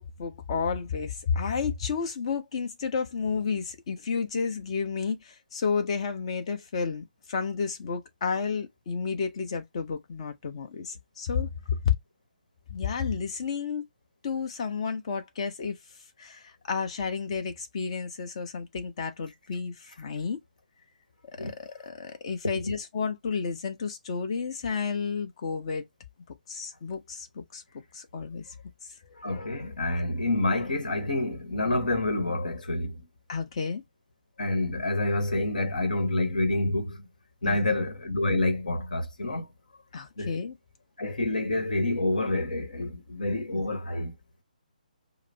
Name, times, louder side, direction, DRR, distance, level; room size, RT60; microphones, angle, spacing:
voice 1, 0.0-11.9 12.7-13.9 14.2-15.8 16.2-20.4 21.4-25.9 26.5-27.6 27.9-28.5 33.3-33.8 37.4-37.6 39.9-40.6 43.5-43.6, left 5 dB, 40° left, 0.9 m, -31 dB
voice 2, 29.2-33.0 34.4-37.0 37.4-39.5 40.2-40.3 41.0-44.1, left 2 dB, 65° left, 1.2 m, -28 dB
5.0 x 2.0 x 3.9 m
figure-of-eight pair, 140°, 5 cm